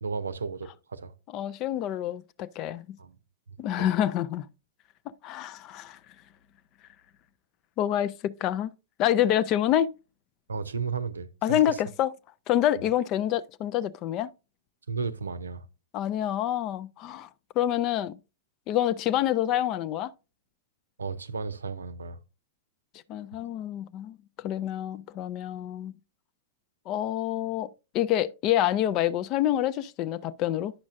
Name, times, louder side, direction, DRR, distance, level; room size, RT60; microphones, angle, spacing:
voice 1, 0.0-1.1 3.0-3.2 3.8-3.9 10.5-11.8 12.8-12.9 14.9-15.6 21.0-22.2, right 5 dB, 75° right, 0.6 m, -34 dB
voice 2, 1.3-2.9 3.6-4.5 5.2-6.0 7.8-8.7 9.0-9.9 11.4-12.1 12.5-14.3 15.9-17.3 17.6-18.2 18.7-20.1 23.1-25.9 26.9-30.7, left 12 dB, 35° left, 0.4 m, -27 dB
10.0 x 6.1 x 2.4 m
figure-of-eight pair, 100°, 0 cm